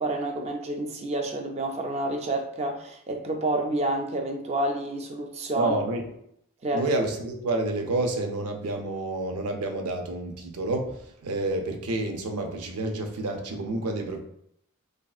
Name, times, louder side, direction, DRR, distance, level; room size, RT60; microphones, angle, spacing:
voice 1, 0.0-5.7 6.6-6.9, right 2 dB, 30° right, 3 dB, 0.3 m, -29 dB
voice 2, 5.5-6.1 6.7-14.2, right 2 dB, 90° right, 3 dB, 0.5 m, -29 dB
3.1 x 2.6 x 2.3 m, 0.73 s
head